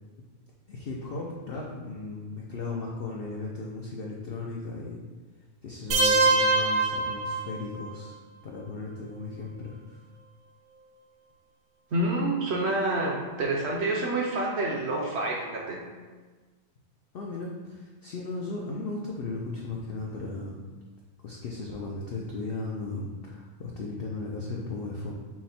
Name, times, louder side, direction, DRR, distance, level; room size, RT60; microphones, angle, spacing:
voice 1, 0.7-5.0 5.6-8.2 8.4-10.0 17.1-20.6 21.2-25.1, left 3 dB, 80° left, -2 dB, 0.5 m, -36 dB
sound 1, 5.9-7.9, right 3 dB, 85° right, 1.1 m, -24 dB
voice 2, 11.9-15.8, right 2 dB, 60° right, -2 dB, 0.7 m, -28 dB
5.9 x 2.1 x 4.2 m, 1.4 s
omnidirectional pair, 1.6 m